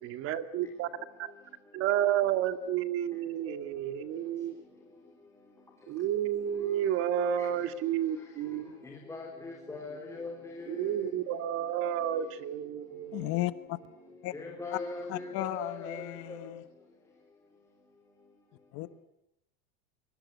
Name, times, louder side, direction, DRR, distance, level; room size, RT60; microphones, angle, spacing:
voice 1, 0.0-0.9 1.2-1.3 1.7-4.6 5.9-8.6 10.7-13.3, right 10 dB, 40° right, 11 dB, 1.9 m, -31 dB
voice 2, 9.1-10.3 10.6-10.7 14.3-16.4, left 3 dB, 10° left, 1 dB, 3.7 m, -40 dB
voice 3, 13.1-13.8 14.2-14.3 14.7-14.8 15.1-16.6 18.7-19.0, left 17 dB, 45° left, 14 dB, 1.1 m, -35 dB
25.0 x 24.5 x 8.1 m, 0.79 s
cardioid pair, 165°, 34 cm